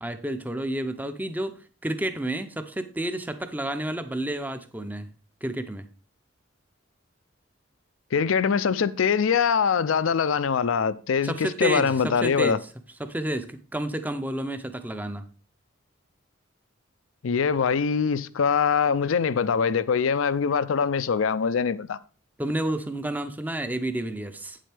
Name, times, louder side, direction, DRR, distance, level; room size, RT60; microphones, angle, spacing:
voice 1, 0.0-5.1 5.4-5.9 11.2-12.7 13.0-15.3 22.4-24.6, right 1 dB, 10° right, 0.6 m, -30 dB
voice 2, 8.1-12.6 17.2-22.0, left 6 dB, 85° left, 0.5 m, -23 dB
8.7 x 7.5 x 3.4 m
head